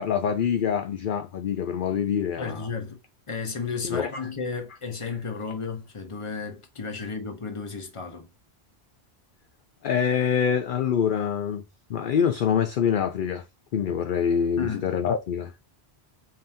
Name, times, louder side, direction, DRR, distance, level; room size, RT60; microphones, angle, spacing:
voice 1, 0.0-2.7 3.8-4.1 7.0-7.1 9.8-11.6 11.9-13.4 13.7-15.5, left 8 dB, 60° left, 0.6 m, -25 dB
voice 2, 2.4-3.0 3.3-8.3 14.6-14.9, left 5 dB, 30° left, 0.9 m, -33 dB
5.3 x 2.8 x 2.7 m
omnidirectional pair, 1.1 m